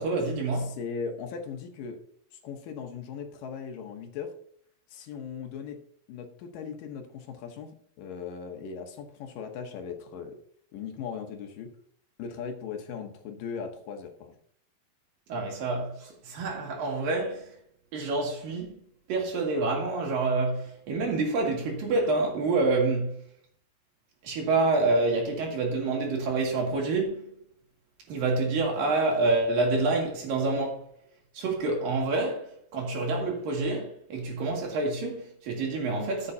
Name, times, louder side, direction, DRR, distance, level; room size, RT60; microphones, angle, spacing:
voice 1, 0.0-0.8 15.3-17.6 17.9-18.8 19.1-23.2 24.2-27.4 28.1-30.8 31.3-36.3, right 3 dB, 75° right, 3.9 m, -27 dB
voice 2, 0.5-2.0 2.3-4.3 4.9-5.8 6.1-10.4 10.7-11.7 12.2-14.4, left 6 dB, 75° left, 2.7 m, -38 dB
14.0 x 7.6 x 2.7 m
omnidirectional pair, 4.0 m